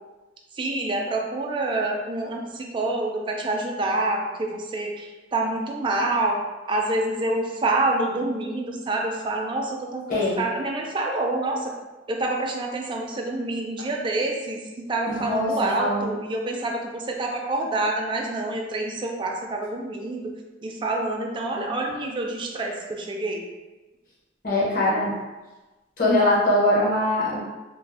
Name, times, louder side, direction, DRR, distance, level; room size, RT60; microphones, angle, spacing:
voice 1, 0.5-11.7 12.1-20.3 20.6-23.5, right 2 dB, 25° right, 0 dB, 0.3 m, -27 dB
voice 2, 10.1-10.4 15.0-15.5 15.8-16.1 24.4-25.1 26.0-27.4, left 1 dB, 50° left, -6 dB, 0.8 m, -22 dB
2.5 x 2.0 x 3.2 m, 1.1 s
head